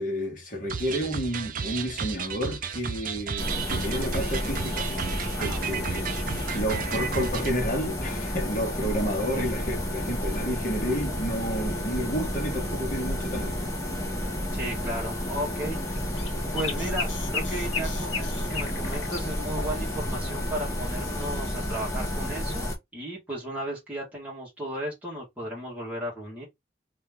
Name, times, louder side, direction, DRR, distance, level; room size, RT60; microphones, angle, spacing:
voice 1, 0.0-4.9 5.4-13.6, equal, 45° left, 1.5 m, -31 dB
sound 1, 0.7-7.5, right 6 dB, 45° right, 0.5 m, -33 dB
sound 2, 3.4-22.8, equal, 15° left, 1.2 m, -31 dB
voice 2, 5.4-5.9 14.5-16.0 16.5-26.4, right 1 dB, 10° right, 1.7 m, -35 dB
sound 3, 15.9-19.2, left 5 dB, 80° left, 1.1 m, -34 dB
3.1 x 3.0 x 3.5 m
head